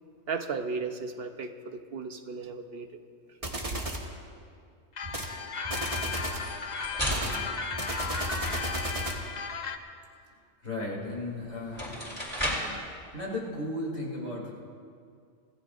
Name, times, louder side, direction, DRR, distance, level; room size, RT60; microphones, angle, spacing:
voice 1, 0.3-3.0, right 4 dB, 60° right, 7 dB, 0.9 m, -35 dB
sound 1, 3.4-4.1 5.0-5.3 5.6-6.5 7.1-9.3, right 1 dB, 30° right, 1.4 m, -34 dB
sound 2, 5.0-9.8, left 5 dB, 40° left, 0.8 m, -35 dB
sound 3, 6.3-8.7 11.1-11.2 11.6-12.8, equal, 10° left, 3.5 m, -34 dB
voice 2, 10.6-12.1 13.1-14.5, left 1 dB, 80° left, -4 dB, 3.6 m, -35 dB
26.5 x 16.0 x 2.6 m, 2.2 s
omnidirectional pair, 1.2 m